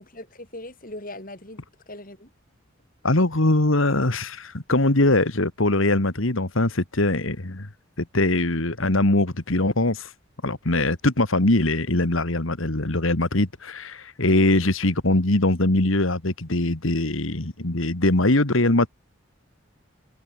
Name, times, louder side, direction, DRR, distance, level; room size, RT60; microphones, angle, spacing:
voice 1, 0.0-2.3, left 1 dB, 40° left, 4.5 m, -40 dB
voice 2, 3.0-7.7 8.0-10.1 10.4-18.9, left 2 dB, 70° left, 2.1 m, -22 dB
head